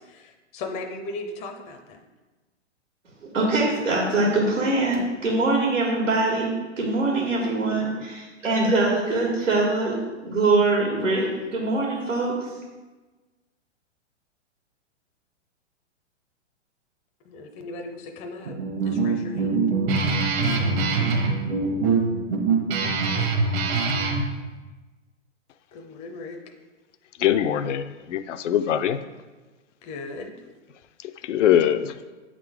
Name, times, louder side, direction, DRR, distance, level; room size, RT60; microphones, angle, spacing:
voice 1, 0.0-2.0 4.2-4.5 17.2-19.6 25.7-26.4 29.8-30.3, left 2 dB, 20° left, 4 dB, 0.5 m, -37 dB
voice 2, 3.2-6.5 6.8-10.0 10.2-12.4, right 2 dB, 90° right, -3 dB, 1.7 m, -23 dB
Guitar, 18.5-24.2, right 4 dB, 55° right, 1.3 m, -23 dB
voice 3, 27.2-29.0 31.2-31.9, left 10 dB, 75° left, 11 dB, 0.5 m, -22 dB
8.8 x 3.7 x 3.5 m, 1.2 s
hypercardioid pair, 120°, 37 cm